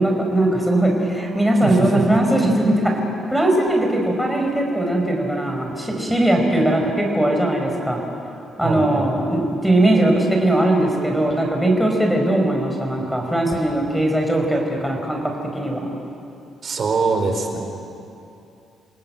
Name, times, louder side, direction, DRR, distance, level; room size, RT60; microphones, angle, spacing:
voice 1, 0.0-3.0 3.3-8.0 8.6-15.9, right 1 dB, ahead, 0 dB, 5.3 m, -19 dB
voice 2, 1.6-2.0 8.6-9.1 16.6-17.6, right 4 dB, 50° right, 4 dB, 4.5 m, -23 dB
28.5 x 18.0 x 9.0 m, 2.7 s
cardioid pair, 90°, 0 cm